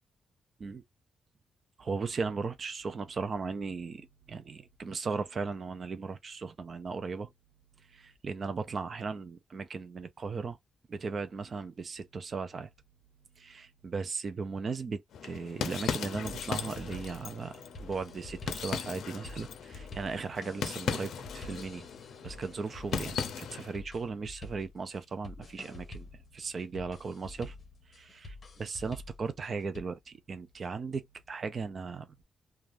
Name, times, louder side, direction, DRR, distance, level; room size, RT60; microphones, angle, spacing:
voice 1, 1.8-7.3 7.9-10.6 10.9-12.7 13.4-21.9 22.2-26.1 26.3-27.6 27.9-32.2, right 4 dB, 40° right, 0.3 m, -37 dB
sound 1, 15.1-23.8, left 7 dB, 75° left, 0.5 m, -38 dB
sound 2, 16.2-29.8, left 2 dB, 30° left, 0.8 m, -48 dB
2.4 x 2.2 x 3.2 m
wide cardioid pair, 155°, 0 cm